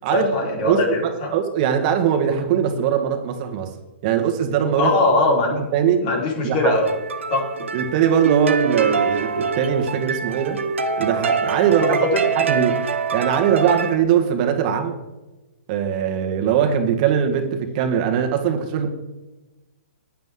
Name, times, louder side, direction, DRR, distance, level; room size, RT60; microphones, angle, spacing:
voice 1, 0.1-1.3 4.8-5.6 6.0-6.9 7.3-7.4 11.8-12.2, left 2 dB, 45° left, -1 dB, 4.5 m, -20 dB
voice 2, 0.6-3.7 4.0-4.9 5.5-6.0 6.4-6.7 7.7-10.6 11.0-12.0 12.3-14.9 15.7-18.9, right 8 dB, 40° right, 5 dB, 1.7 m, -21 dB
sound 1, 6.7-14.0, right 5 dB, 80° right, 1.4 m, -24 dB
15.0 x 10.5 x 3.8 m, 1.1 s
hypercardioid pair, 130°, 7 cm